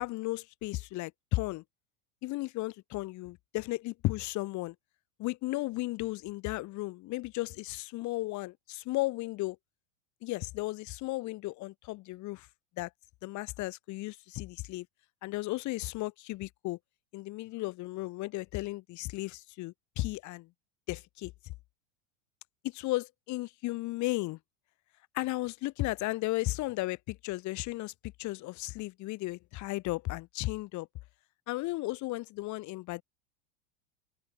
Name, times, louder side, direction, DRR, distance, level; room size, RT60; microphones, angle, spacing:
voice 1, 0.0-1.6 2.2-4.7 5.2-9.6 10.2-12.5 12.8-12.9 13.2-14.9 15.2-16.8 17.1-20.5 20.9-21.5 22.6-24.4 25.1-30.9 31.5-33.0, left 19 dB, 50° left, 2.3 m, -35 dB
hypercardioid pair, 100°, 38 cm